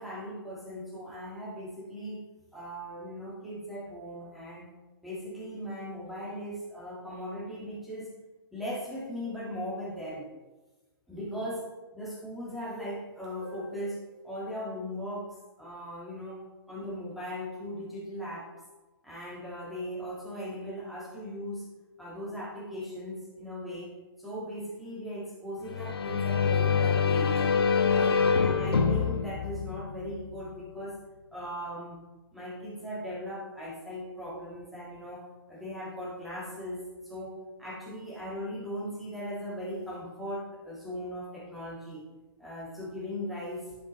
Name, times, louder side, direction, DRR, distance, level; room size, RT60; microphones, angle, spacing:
voice 1, 0.0-2.2 2.5-4.7 5.0-8.1 8.5-10.3 11.1-11.6 11.9-14.0 14.2-15.3 15.6-18.5 19.0-21.7 22.0-23.9 24.2-27.4 27.9-30.9 31.3-32.0 32.3-42.0 42.4-43.7, equal, ahead, -8 dB, 1.9 m, -38 dB
String Ending, 25.7-30.4, left 6 dB, 85° left, 0.8 m, -26 dB
11.0 x 5.2 x 3.2 m, 1.2 s
hypercardioid pair, 130°, 13 cm